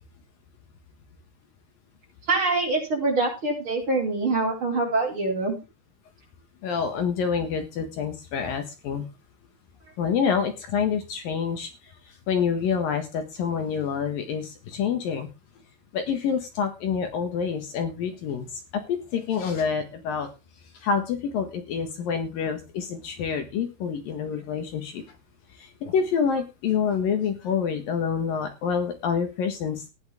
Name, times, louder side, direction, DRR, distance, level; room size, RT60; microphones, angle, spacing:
voice 1, 2.3-5.6, right 3 dB, 30° right, -1 dB, 5.6 m, -24 dB
voice 2, 6.6-9.0 10.0-11.7 12.3-15.3 15.9-18.5 18.9-20.3 20.8-25.0 25.8-29.9, left 6 dB, 65° left, 6 dB, 3.1 m, -27 dB
15.0 x 10.5 x 3.6 m, 0.28 s
omnidirectional pair, 4.6 m